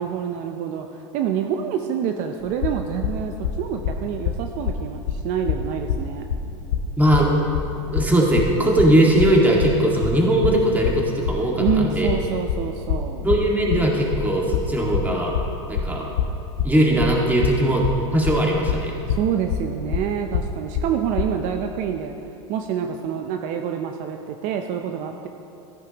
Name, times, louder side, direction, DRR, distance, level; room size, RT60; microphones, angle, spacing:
voice 1, 0.0-6.2 11.6-13.2 19.1-22.1 22.5-25.3, right 8 dB, 55° right, 5 dB, 0.6 m, -27 dB
sound 1, 2.4-21.2, left 8 dB, 65° left, 0.9 m, -25 dB
voice 2, 7.0-7.4 7.9-12.1 13.2-15.4 15.7-16.0 16.6-17.9 18.1-19.0, right 1 dB, 10° right, -2 dB, 1.9 m, -19 dB
14.0 x 10.5 x 3.0 m, 2.8 s
supercardioid pair, 115°, 15 cm